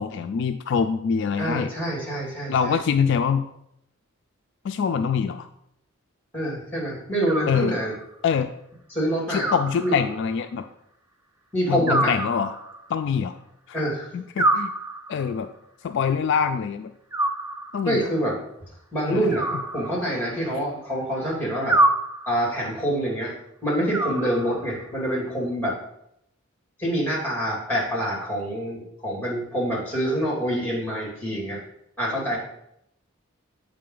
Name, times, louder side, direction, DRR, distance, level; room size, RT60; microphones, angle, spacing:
voice 1, 0.0-1.7 2.5-3.4 4.6-5.5 7.5-7.7 8.2-8.5 9.3-10.7 11.7-12.5 12.9-13.3 13.7-13.8 14.1-14.7 15.1-15.5 15.8-16.9 17.7-18.1 19.0-19.2, left 6 dB, 60° left, 8 dB, 0.3 m, -24 dB
voice 2, 1.4-2.8 6.3-7.9 8.9-9.5 9.8-9.9 11.5-12.1 13.7-14.1 17.9-18.4 18.9-21.8 22.3-23.3 23.6-25.7 26.8-31.6 32.0-32.4, equal, 10° left, -2 dB, 2.4 m, -26 dB
Animal, 7.3-8.1 9.4-10.4 11.9-12.9 14.4-15.4 17.1-18.0 19.3-20.4 21.7-22.6 23.9-24.8, right 2 dB, 15° right, 0.4 m, -27 dB
7.5 x 5.0 x 3.8 m, 0.77 s
head